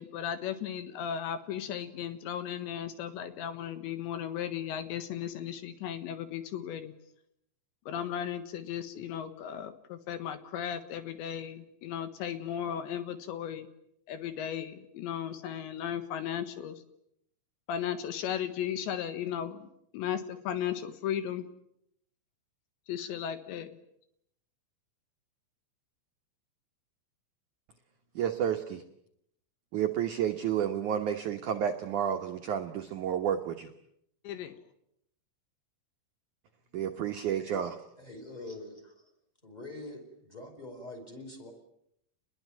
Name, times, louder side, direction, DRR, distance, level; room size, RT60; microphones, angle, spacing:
voice 1, 0.0-6.9 7.9-13.7 14.1-16.8 17.7-19.7 19.9-21.5 22.9-23.7 34.2-34.6, left 9 dB, 75° left, 10 dB, 3.6 m, -36 dB
voice 2, 28.2-28.8 29.7-33.7 36.7-37.8, right 9 dB, 75° right, 5 dB, 1.8 m, -31 dB
voice 3, 38.0-39.1 39.4-41.5, left 2 dB, 10° left, 5 dB, 4.6 m, -44 dB
28.0 x 21.0 x 9.2 m, 0.77 s
omnidirectional pair, 5.4 m